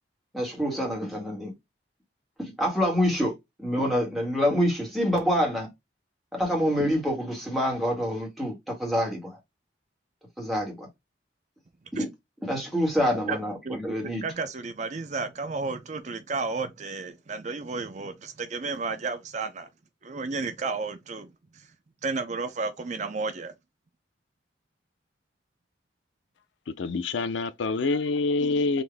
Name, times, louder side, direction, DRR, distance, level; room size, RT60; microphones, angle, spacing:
voice 1, 0.3-1.5 2.4-3.3 3.6-5.7 6.3-9.4 10.4-10.9 12.0-12.1 12.5-14.2, equal, ahead, 1.5 m, -26 dB
voice 2, 13.6-19.7 20.0-21.7 22.0-23.5, right 4 dB, 40° right, 0.5 m, -32 dB
voice 3, 26.8-28.8, left 3 dB, 85° left, 0.5 m, -26 dB
3.9 x 2.6 x 3.3 m
head